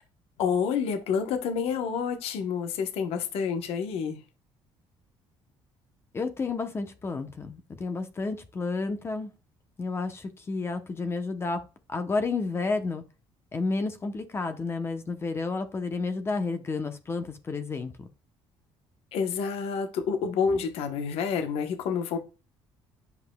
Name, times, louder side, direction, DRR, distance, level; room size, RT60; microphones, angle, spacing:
voice 1, 0.4-4.2 19.1-22.2, left 6 dB, 75° left, 1.0 m, -28 dB
voice 2, 6.1-9.3 9.8-11.6 11.9-13.0 13.5-18.1, left 3 dB, 25° left, 0.8 m, -31 dB
8.0 x 5.3 x 2.2 m
cardioid pair, 135°, 10 cm